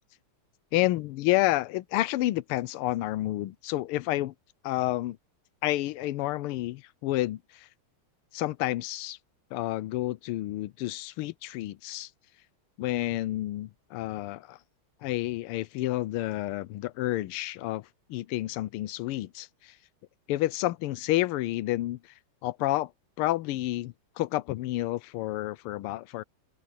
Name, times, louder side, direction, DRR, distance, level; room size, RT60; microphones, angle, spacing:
voice 1, 0.7-4.3 4.6-5.2 5.6-7.7 8.3-9.2 9.5-12.1 12.8-14.6 15.0-19.8 20.3-22.1 22.4-22.9 23.2-26.2, left 16 dB, 85° left, 1.6 m, -30 dB
open air
omnidirectional pair, 2.4 m